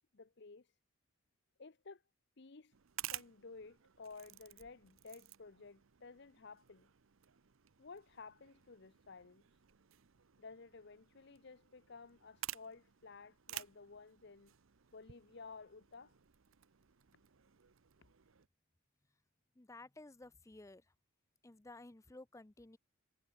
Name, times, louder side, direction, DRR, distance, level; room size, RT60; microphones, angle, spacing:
voice 1, 0.1-0.7 1.6-2.0 2.4-2.7 3.1-6.9 7.8-9.5 10.4-14.5 14.9-16.1, left 4 dB, 55° left, 0.7 m, -54 dB
sound 1, 2.7-18.5, right 14 dB, 70° right, 0.7 m, -53 dB
voice 2, 19.6-20.9 21.4-22.8, left 2 dB, 15° left, 0.5 m, -55 dB
head